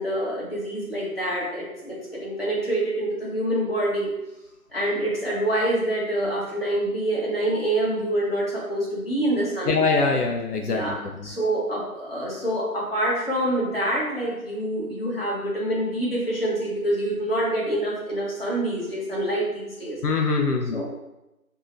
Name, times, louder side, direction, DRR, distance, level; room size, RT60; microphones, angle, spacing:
voice 1, 0.0-4.1 4.7-9.8 10.6-20.0 20.7-20.8, right 1 dB, 40° left, -6 dB, 1.1 m, -26 dB
voice 2, 9.7-11.0 20.0-20.8, left 4 dB, 85° left, 2 dB, 0.6 m, -23 dB
2.8 x 2.4 x 4.1 m, 0.94 s
figure-of-eight pair, 175°, 45 cm